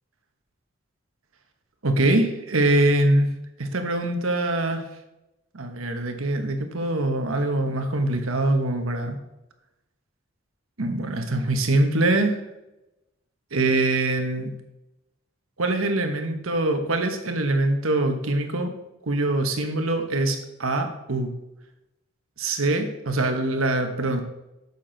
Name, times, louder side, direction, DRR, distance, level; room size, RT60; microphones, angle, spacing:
voice 1, 1.8-3.3 3.6-4.8 5.5-9.2 10.8-12.4 13.5-14.5 15.6-18.7 19.1-21.3 22.4-24.2, right 2 dB, 90° right, 6 dB, 1.2 m, -23 dB
8.8 x 7.1 x 4.0 m, 0.94 s
head